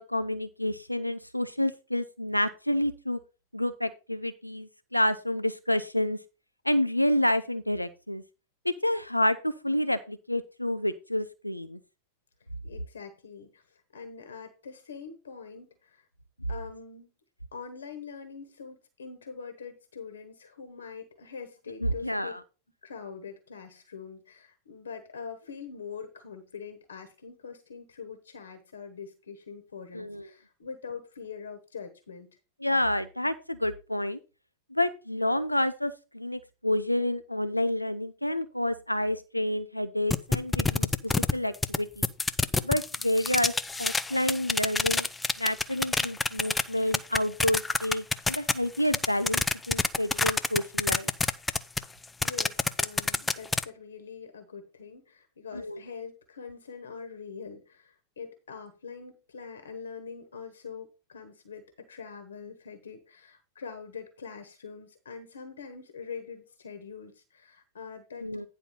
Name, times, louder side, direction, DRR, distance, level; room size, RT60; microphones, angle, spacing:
voice 1, 0.0-3.2 3.5-6.2 6.7-8.2 8.6-11.8 21.8-22.4 29.9-30.3 32.6-34.2 34.7-42.0 42.6-43.5 43.8-45.1 45.4-51.1 55.5-55.8 68.2-68.5, left 1 dB, 90° left, 12 dB, 0.4 m, -29 dB
voice 2, 12.6-16.0 16.5-17.1 17.5-22.3 22.8-32.3 51.9-68.3, left 6 dB, 70° left, 7 dB, 1.3 m, -43 dB
sound 1, 40.1-41.8 42.0-46.6 46.9-53.6, left 3 dB, 10° left, 0.4 m, -25 dB
9.8 x 4.1 x 5.6 m, 0.31 s
figure-of-eight pair, 90°, 0 cm